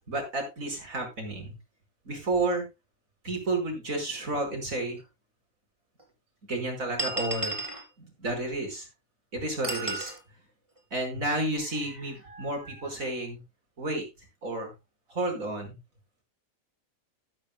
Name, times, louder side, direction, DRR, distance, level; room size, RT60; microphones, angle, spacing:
voice 1, 0.1-1.5 2.1-2.7 3.2-5.0 6.5-7.6 8.0-8.9 9.3-10.1 10.9-13.4 13.8-14.0 14.4-14.7 15.1-15.8, right 2 dB, 75° right, 3 dB, 5.5 m, -31 dB
sound 1, 5.0-5.1 6.0-6.1 7.0-7.8 9.6-10.2, right 2 dB, 20° right, 3.6 m, -32 dB
14.0 x 12.0 x 2.2 m, 0.25 s
omnidirectional pair, 1.4 m